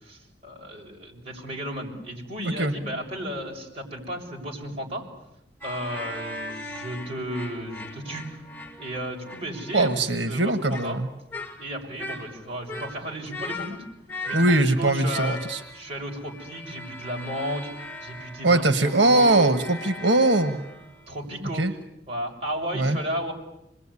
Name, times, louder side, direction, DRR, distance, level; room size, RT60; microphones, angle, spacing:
voice 1, 0.0-5.1 5.6-8.4 8.8-9.9 10.3-11.0 11.6-13.8 14.3-15.4 15.7-17.7 18.0-19.5 21.1-21.7 22.1-23.3, equal, 35° right, -1 dB, 7.0 m, -34 dB
sound 1, 5.6-10.0 10.7-11.0 11.3-11.7 12.0-14.8 15.1-21.3, left 1 dB, 10° left, 4.7 m, -39 dB
voice 2, 9.7-11.1 14.3-15.6 18.4-20.6 21.5-21.7 22.7-23.0, right 2 dB, 80° right, 8 dB, 1.5 m, -21 dB
26.5 x 22.0 x 9.9 m, 0.87 s
head